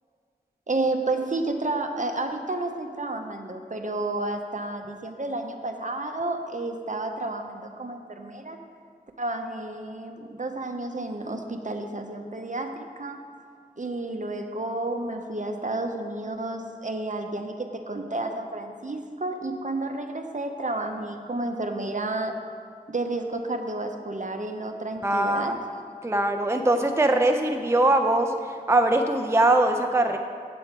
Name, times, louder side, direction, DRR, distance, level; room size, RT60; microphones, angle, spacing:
voice 1, 0.7-8.6 9.2-13.2 13.8-22.4 22.9-25.6, right 2 dB, 50° right, 5 dB, 0.7 m, -31 dB
voice 2, 25.0-25.6 26.0-28.3 28.7-30.2, right 2 dB, 15° right, 5 dB, 0.5 m, -21 dB
8.3 x 7.8 x 4.5 m, 2.2 s
wide cardioid pair, 50°, 16 cm